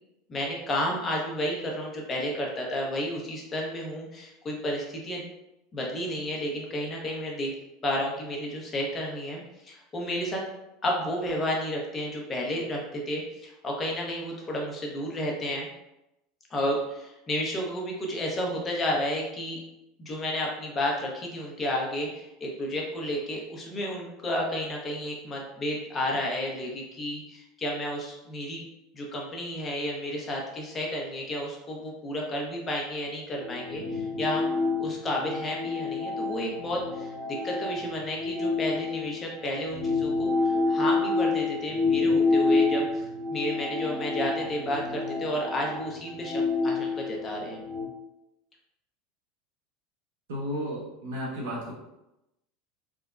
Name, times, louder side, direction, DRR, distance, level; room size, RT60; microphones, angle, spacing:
voice 1, 0.3-5.2 5.7-7.5 7.8-10.4 10.8-15.7 16.5-19.6 20.0-28.6 28.9-34.5 34.8-37.1 37.4-47.6, left 1 dB, 30° left, -1 dB, 0.8 m, -31 dB
sound 1, 33.4-39.2 39.7-47.8, left 3 dB, 85° left, 0.9 m, -28 dB
voice 2, 50.3-51.7, equal, 80° right, -5 dB, 0.9 m, -33 dB
3.4 x 2.1 x 2.4 m, 0.91 s
hypercardioid pair, 85°, 0 cm